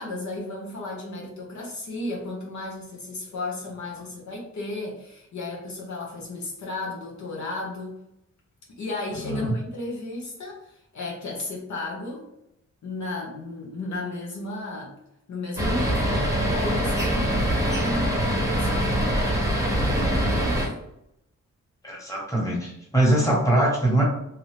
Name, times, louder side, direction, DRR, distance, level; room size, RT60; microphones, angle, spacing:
voice 1, 0.0-8.0 8.8-12.3 12.8-14.9 15.3-20.7, left 2 dB, 70° left, -2 dB, 0.8 m, -34 dB
sound 1, 15.6-20.7, equal, 10° right, 0.8 m, -23 dB
voice 2, 21.8-24.0, right 1 dB, 10° left, -5 dB, 1.3 m, -22 dB
2.8 x 2.5 x 3.2 m, 0.81 s
cardioid pair, 85°, 30 cm